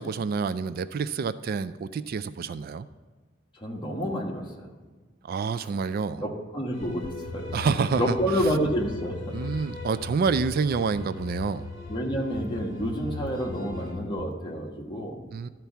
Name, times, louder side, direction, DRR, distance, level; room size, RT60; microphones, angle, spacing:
voice 1, 0.0-2.9 5.2-6.2 7.5-8.5 9.3-11.7 15.3-15.5, right 5 dB, 50° right, 14 dB, 0.3 m, -28 dB
voice 2, 3.6-4.7 6.2-7.1 7.3-7.5 8.0-9.4 11.9-15.2, equal, 25° left, -1 dB, 1.4 m, -29 dB
sound 1, 6.7-13.9, left 2 dB, 45° left, 2.3 m, -44 dB
sound 2, 6.8-14.2, left 4 dB, 75° left, 0.7 m, -39 dB
12.5 x 4.5 x 7.0 m, 1.3 s
head